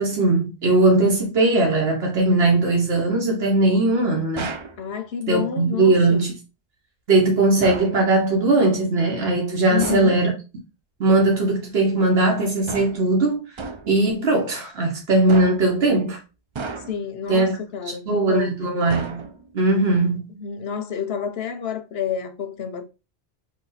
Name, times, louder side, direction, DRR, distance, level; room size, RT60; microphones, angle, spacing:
voice 1, 0.0-4.5 5.3-6.3 7.1-10.3 11.0-13.5 13.9-16.2 17.3-17.6 17.8-19.2 19.5-20.2, right 2 dB, 80° right, 1.3 m, -19 dB
sound 1, 4.4-4.8 7.6-8.0 9.8-10.2 12.7-13.1 13.6-14.0 15.3-15.8 16.6-17.1 18.9-19.6, right 4 dB, 45° right, 0.4 m, -32 dB
voice 2, 4.8-6.2 9.7-10.2 16.9-18.7 20.3-22.8, left 8 dB, 75° left, 1.0 m, -29 dB
4.3 x 2.5 x 4.0 m
omnidirectional pair, 1.0 m